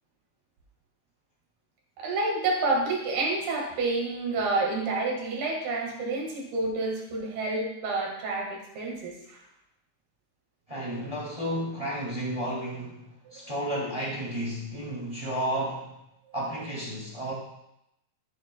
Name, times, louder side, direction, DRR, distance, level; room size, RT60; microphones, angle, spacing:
voice 1, 2.0-9.4 13.4-13.5, right 3 dB, 85° right, -1 dB, 3.9 m, -29 dB
voice 2, 10.7-15.9 16.3-17.3, equal, 10° right, -5 dB, 1.7 m, -32 dB
12.0 x 8.7 x 2.3 m, 0.82 s
omnidirectional pair, 4.3 m